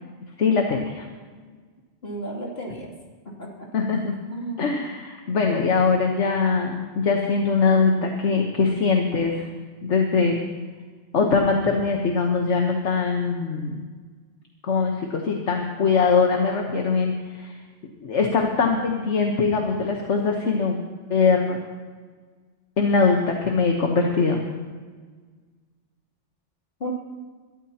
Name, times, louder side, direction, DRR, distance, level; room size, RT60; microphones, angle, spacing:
voice 1, 0.4-1.1 3.7-4.1 4.6-9.5 9.8-10.4 11.1-13.8 14.6-17.6 18.0-20.8 21.1-21.6 22.8-24.4, left 4 dB, 75° left, 2 dB, 1.5 m, -22 dB
voice 2, 2.0-2.9 3.4-3.8 4.3-4.8 26.8-26.9, right 1 dB, 60° left, -3 dB, 3.1 m, -34 dB
21.5 x 13.0 x 2.9 m, 1.5 s
omnidirectional pair, 1.2 m